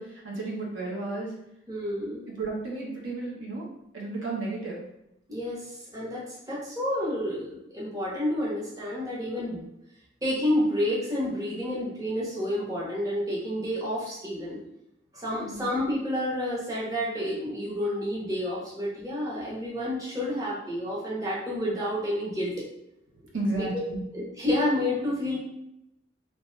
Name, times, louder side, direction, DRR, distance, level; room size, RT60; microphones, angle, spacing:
voice 1, 0.0-1.3 2.3-3.7 3.9-4.9 15.3-15.7 23.3-24.0, right 2 dB, 85° right, -3 dB, 1.0 m, -33 dB
voice 2, 1.7-2.2 5.3-9.6 10.2-14.6 15.1-22.5 23.5-23.8 24.1-25.4, left 1 dB, 20° right, -7 dB, 0.8 m, -29 dB
2.8 x 2.2 x 3.1 m, 0.84 s
head